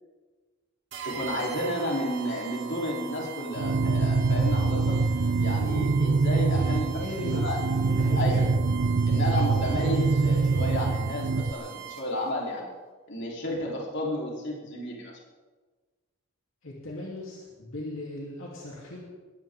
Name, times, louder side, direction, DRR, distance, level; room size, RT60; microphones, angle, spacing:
sound 1, 0.9-12.3, right 9 dB, 65° right, 2.4 m, -42 dB
voice 1, 1.0-5.0 5.4-7.0 7.4-7.6 8.2-8.4 9.1-12.7 13.1-15.2, left 1 dB, 60° left, -2 dB, 3.8 m, -32 dB
sound 2, 3.6-11.5, right 4 dB, 85° right, 0.6 m, -24 dB
voice 2, 7.0-7.5 7.9-8.4 9.8-10.1 16.6-19.0, left 1 dB, 75° left, -4 dB, 3.3 m, -37 dB
21.0 x 16.0 x 3.8 m, 1.3 s
head